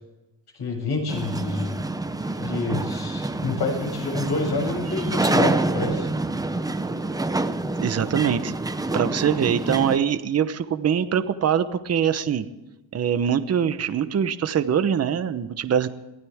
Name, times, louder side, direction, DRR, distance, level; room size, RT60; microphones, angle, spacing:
voice 1, 0.6-1.7 2.4-6.1, left 3 dB, 50° left, 1 dB, 7.8 m, -28 dB
sound 1, 1.1-10.0, right 2 dB, 10° right, 0.7 m, -27 dB
voice 2, 7.8-8.5 8.9-12.5 12.9-15.9, right 8 dB, 30° right, 11 dB, 1.0 m, -23 dB
23.5 x 16.0 x 3.6 m, 1.0 s
cardioid pair, 130°, 49 cm